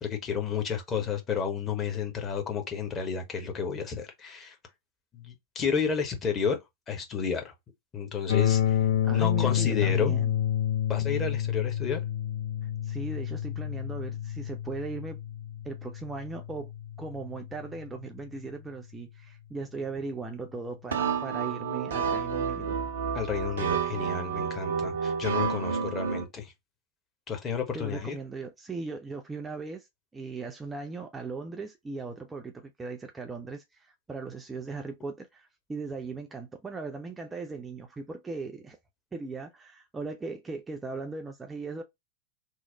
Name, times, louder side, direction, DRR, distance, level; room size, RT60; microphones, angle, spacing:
voice 1, 0.0-4.5 5.1-6.6 6.9-7.5 7.9-8.8 9.1-10.1 10.9-12.0 23.1-26.5 27.3-28.2, left 6 dB, 25° left, 0.9 m, -31 dB
sound 1, 8.3-18.2, left 10 dB, 55° left, 0.5 m, -29 dB
voice 2, 9.0-10.3 12.6-15.2 15.6-16.7 17.0-22.8 27.7-29.9 30.1-38.8 39.1-41.8, right 4 dB, 15° right, 0.5 m, -38 dB
sound 2, 20.9-26.2, right 6 dB, 65° right, 0.5 m, -30 dB
3.1 x 2.0 x 3.7 m
figure-of-eight pair, 90°, 0 cm